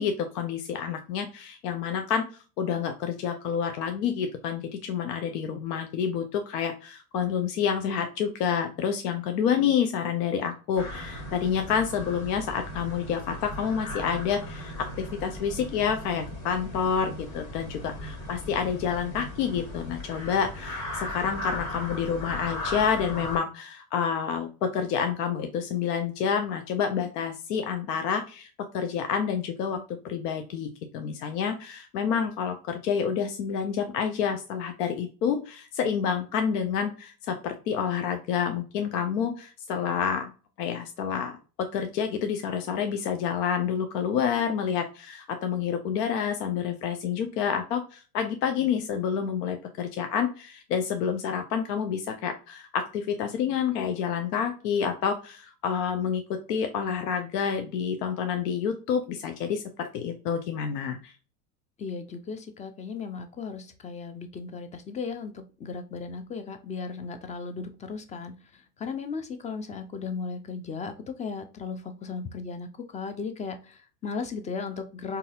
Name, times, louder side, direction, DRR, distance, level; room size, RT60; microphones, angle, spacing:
voice 1, 0.0-2.2 2.6-28.5 28.7-40.3 40.6-41.3 41.6-61.1, left 7 dB, 75° left, 6 dB, 0.7 m, -28 dB
sound 1, 10.8-23.4, left 1 dB, 40° left, 1.6 m, -37 dB
voice 2, 61.8-72.7 72.9-75.2, left 5 dB, 15° left, 8 dB, 0.4 m, -36 dB
3.9 x 2.7 x 2.3 m, 0.35 s
hypercardioid pair, 90°, 48 cm